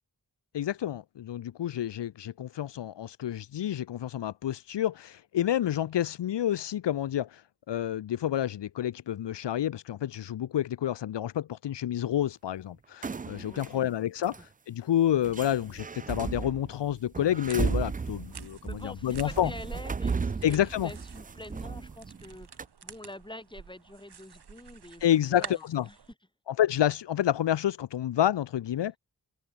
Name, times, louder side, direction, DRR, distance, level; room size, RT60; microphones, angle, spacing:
voice 1, 0.5-7.4 7.7-19.5 20.4-20.9 25.0-25.9 26.5-29.0, left 11 dB, 85° left, 0.6 m, -29 dB
sound 1, 13.0-13.7 14.2-14.4 15.2-22.3 22.6-22.7, right 5 dB, 20° right, 0.3 m, -35 dB
voice 2, 13.5-13.9 18.7-25.6 25.9-26.0, left 1 dB, 10° left, 6.4 m, -46 dB
sound 2, 17.5-26.1, right 7 dB, 70° right, 1.6 m, -47 dB
wide cardioid pair, 110°, 41 cm